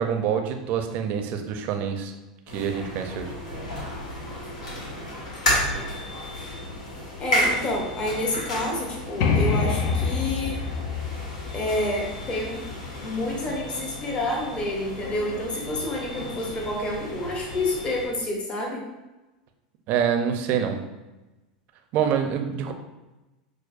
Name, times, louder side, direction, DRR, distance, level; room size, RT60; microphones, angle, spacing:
voice 1, 0.0-2.1 2.5-3.3 19.9-20.8 21.9-22.7, right 8 dB, 50° right, 5 dB, 0.5 m, -26 dB
sound 1, 2.5-18.1, equal, 85° left, 1.2 m, -32 dB
voice 2, 7.2-10.6 11.5-12.6 13.0-18.8, left 1 dB, 30° left, -1 dB, 0.9 m, -28 dB
sound 2, 9.2-12.9, left 5 dB, 55° left, 0.5 m, -26 dB
6.2 x 2.1 x 2.5 m, 1.1 s
hypercardioid pair, 100°, 4 cm